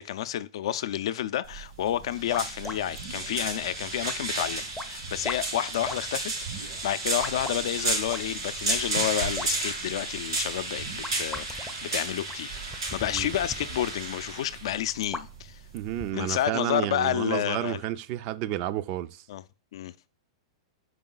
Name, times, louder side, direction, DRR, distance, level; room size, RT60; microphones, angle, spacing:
voice 1, 0.0-15.6 16.1-17.8 19.3-19.4 19.7-19.9, left 11 dB, 70° left, 0.4 m, -30 dB
sound 1, 1.4-16.1, right 3 dB, 85° right, 2.4 m, -33 dB
sound 2, 2.0-16.4, left 2 dB, 5° left, 0.5 m, -43 dB
sound 3, 2.9-3.7 4.0-4.4 4.9-5.6 6.3-7.0 7.3-8.3 8.6-9.9 10.2-10.3 10.7-11.6 12.0-13.9, right 5 dB, 70° right, 0.9 m, -45 dB
voice 2, 15.7-19.2, right 13 dB, 45° right, 0.4 m, -31 dB
5.2 x 4.7 x 3.8 m
hypercardioid pair, 125°, 3 cm